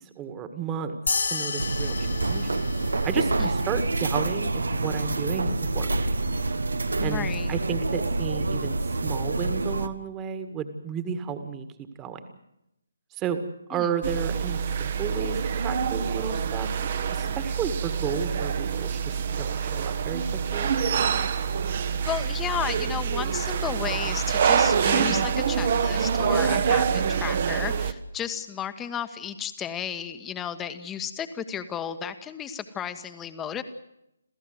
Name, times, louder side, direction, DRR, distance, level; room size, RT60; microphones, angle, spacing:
voice 1, 0.2-1.0 1.3-2.5 3.0-6.1 7.0-11.7 12.0-12.2 13.2-13.4 13.7-16.9 17.1-20.7, right 7 dB, 15° right, 9 dB, 1.9 m, -32 dB
sound 1, 1.1-3.8, left 5 dB, 65° left, 2.0 m, -32 dB
sound 2, 1.6-9.9, right 2 dB, 70° right, 1.3 m, -27 dB
voice 2, 7.0-7.5 13.7-13.9 22.1-33.6, left 8 dB, 10° left, 10 dB, 1.4 m, -33 dB
sound 3, 14.0-27.9, right 7 dB, 40° right, 1.4 m, -26 dB
28.0 x 15.5 x 7.9 m, 0.84 s
figure-of-eight pair, 145°, 0 cm